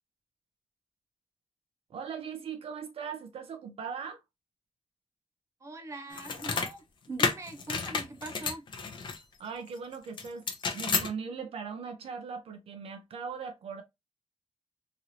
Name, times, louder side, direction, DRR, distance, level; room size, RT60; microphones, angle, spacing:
voice 1, 1.9-4.2 9.4-10.5 10.7-13.8, right 6 dB, 65° right, 0.6 m, -39 dB
voice 2, 5.6-8.7, right 2 dB, 30° right, 0.7 m, -42 dB
sound 1, 6.1-6.7 7.2-9.2 10.2-11.1, left 5 dB, 50° left, 0.7 m, -31 dB
3.1 x 2.6 x 2.8 m
wide cardioid pair, 160°, 11 cm